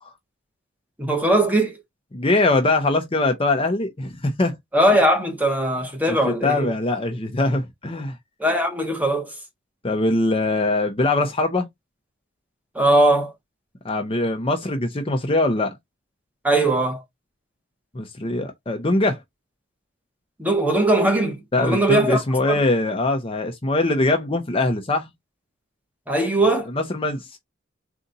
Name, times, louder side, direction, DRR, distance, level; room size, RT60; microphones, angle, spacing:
voice 1, 1.0-1.8 4.7-6.7 8.4-9.3 12.7-13.3 16.4-17.0 20.4-22.5 26.1-26.7, right 1 dB, 10° right, 1.1 m, -20 dB
voice 2, 2.1-4.6 6.1-6.2 6.4-8.2 9.8-11.7 13.8-15.7 17.9-19.2 21.5-25.1 26.7-27.3, left 2 dB, 25° left, 0.7 m, -22 dB
4.0 x 2.4 x 3.9 m
head